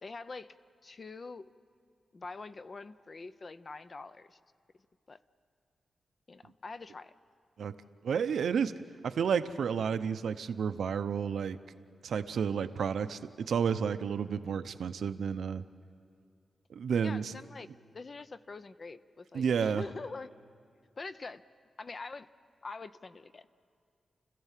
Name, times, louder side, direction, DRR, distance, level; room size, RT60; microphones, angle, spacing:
voice 1, 0.0-0.5 0.8-1.5 2.1-4.4 5.1-5.2 6.3-7.1 17.0-17.7 17.9-20.3 21.0-21.4 21.8-22.3 22.6-23.5, left 3 dB, 35° left, 13 dB, 0.5 m, -44 dB
voice 2, 8.0-8.7 9.0-11.6 12.0-15.6 16.7-17.3 19.3-19.8, right 7 dB, 85° right, 11 dB, 0.7 m, -31 dB
29.0 x 15.5 x 7.4 m, 2.2 s
wide cardioid pair, 155°, 0 cm